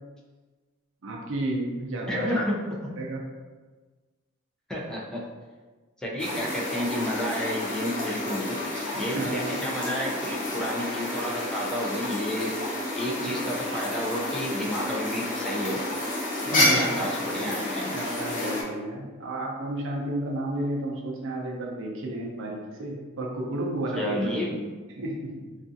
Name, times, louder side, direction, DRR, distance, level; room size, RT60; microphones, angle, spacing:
voice 1, 1.0-2.3 3.0-3.2 8.7-9.6 13.2-13.6 16.4-17.1 17.9-24.3 24.9-25.4, right 1 dB, 65° right, -1 dB, 0.5 m, -32 dB
voice 2, 2.1-3.0 4.7-5.2 6.0-12.6 13.0-15.8 16.5-17.9 24.0-24.7, equal, 5° left, -4 dB, 0.4 m, -31 dB
sound 1, 6.2-18.6, left 1 dB, 40° left, 0.7 m, -30 dB
2.5 x 2.4 x 2.6 m, 1.3 s
head